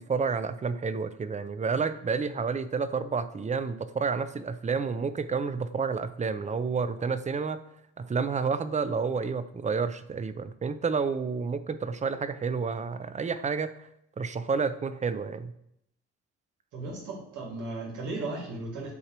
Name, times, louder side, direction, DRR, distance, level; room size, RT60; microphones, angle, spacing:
voice 1, 0.0-7.6 8.0-13.7 14.2-15.5, right 5 dB, 25° right, 12 dB, 0.5 m, -30 dB
voice 2, 16.7-18.9, right 2 dB, 80° right, -2 dB, 2.2 m, -36 dB
8.2 x 2.9 x 6.0 m, 0.75 s
cardioid pair, 90°, 30 cm